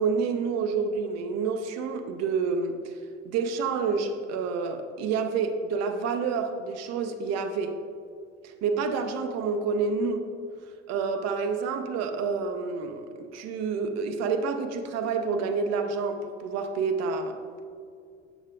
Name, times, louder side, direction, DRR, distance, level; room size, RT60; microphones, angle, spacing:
voice 1, 0.0-2.7 3.2-7.8 8.4-10.3 10.9-17.6, right 5 dB, 45° right, 7 dB, 0.7 m, -28 dB
7.9 x 7.2 x 2.4 m, 2.3 s
figure-of-eight pair, 65°, 37 cm